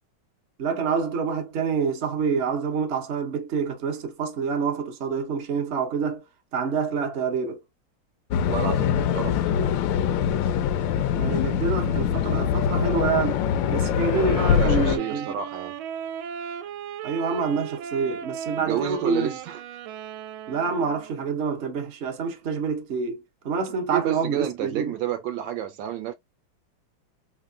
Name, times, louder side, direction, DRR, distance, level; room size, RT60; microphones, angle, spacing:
voice 1, 0.6-6.2 6.5-7.6 11.2-13.4 13.7-15.4 17.0-19.4 20.5-24.9, right 5 dB, 50° right, 0.8 m, -27 dB
sound 1, 8.3-15.0, left 8 dB, 75° left, 1.2 m, -23 dB
voice 2, 8.4-9.4 14.4-15.7 18.6-19.6 23.9-26.1, right 10 dB, 75° right, 1.2 m, -30 dB
Wind instrument woodwind instrument, 14.1-21.3, right 9 dB, 90° right, 1.4 m, -37 dB
3.6 x 3.3 x 2.3 m
omnidirectional pair, 2.2 m